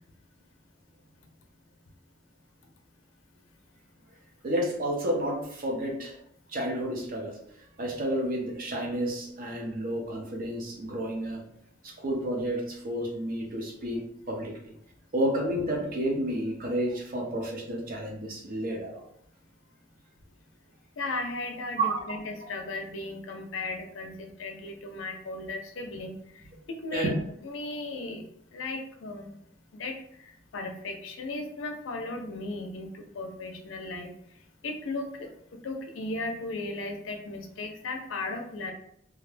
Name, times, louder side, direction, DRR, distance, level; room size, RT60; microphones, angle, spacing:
voice 1, 4.4-6.2 6.5-7.4 7.8-11.4 11.8-14.6 15.1-19.0 21.8-22.0 26.9-27.2, right 1 dB, 45° right, 0 dB, 0.6 m, -30 dB
voice 2, 21.0-26.1 26.8-27.1 27.4-28.2 28.5-29.4 29.8-34.1 34.6-35.3 35.6-38.7, left 2 dB, 85° left, 5 dB, 0.5 m, -36 dB
2.3 x 2.1 x 3.2 m, 0.69 s
head